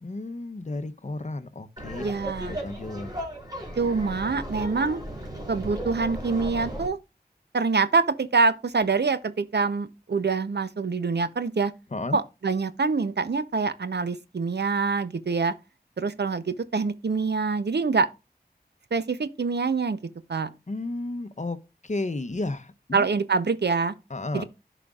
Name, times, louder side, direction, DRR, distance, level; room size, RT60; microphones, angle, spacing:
voice 1, 0.0-2.0 2.5-3.1 11.9-12.2 20.7-21.6 21.8-23.1 24.1-24.4, left 2 dB, 45° left, 0.8 m, -32 dB
Laughter, 1.8-6.9, equal, 25° right, 3.2 m, -35 dB
voice 2, 2.0-2.6 3.8-5.0 5.5-7.0 7.5-11.7 12.1-15.5 16.0-18.1 18.9-20.0 20.3-20.5 22.9-23.9 24.3-24.4, right 4 dB, 85° right, 0.7 m, -25 dB
11.0 x 5.0 x 2.4 m
wide cardioid pair, 55°, 17 cm